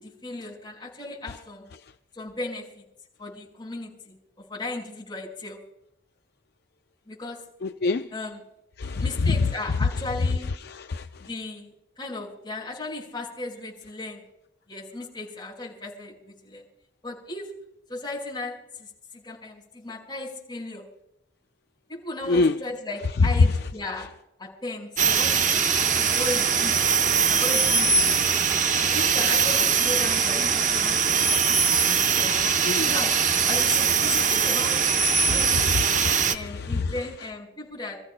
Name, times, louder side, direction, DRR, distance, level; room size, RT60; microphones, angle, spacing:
voice 1, 0.0-1.7 2.1-2.8 3.2-4.2 4.5-5.6 7.1-7.4 8.1-8.4 9.0-10.5 11.2-11.7 12.0-14.2 14.7-16.6 17.0-17.6 17.9-20.9 21.9-24.1 24.4-25.5 25.9-26.7 27.3-28.0 28.9-31.2 32.1-32.4 32.8-34.9 35.3-35.7 36.3-38.0, left 2 dB, 25° left, 5.1 m, -36 dB
voice 2, 7.6-8.1 8.8-9.3 10.6-11.1 22.3-22.6 32.6-32.9 35.9-36.9, left 3 dB, 55° left, 0.5 m, -26 dB
sound 1, 25.0-36.3, right 6 dB, 40° right, 0.7 m, -22 dB
28.5 x 14.5 x 2.2 m
head